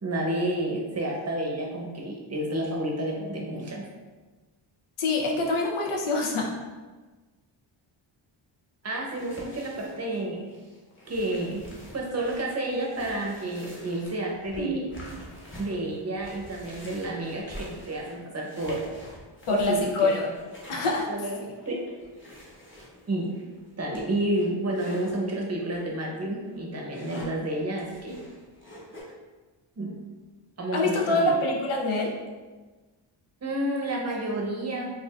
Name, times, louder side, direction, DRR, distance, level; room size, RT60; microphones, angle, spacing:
voice 1, 0.0-3.8 8.8-10.5 11.1-11.7 11.9-14.9 15.6-18.8 19.5-20.1 21.1-21.4 21.7-21.8 23.1-23.3 23.8-28.2 29.8-29.9 30.6-31.3 33.4-34.9, right 1 dB, 35° right, -1 dB, 0.7 m, -30 dB
voice 2, 5.0-6.5 14.6-14.8 19.5-20.3 20.7-21.1 30.7-32.1, left 2 dB, 85° left, 0 dB, 0.8 m, -25 dB
sound 1, 9.0-25.1 25.7-25.9 26.3-29.0, equal, 25° left, 0.9 m, -46 dB
4.6 x 2.5 x 2.3 m, 1.3 s
wide cardioid pair, 115°, 48 cm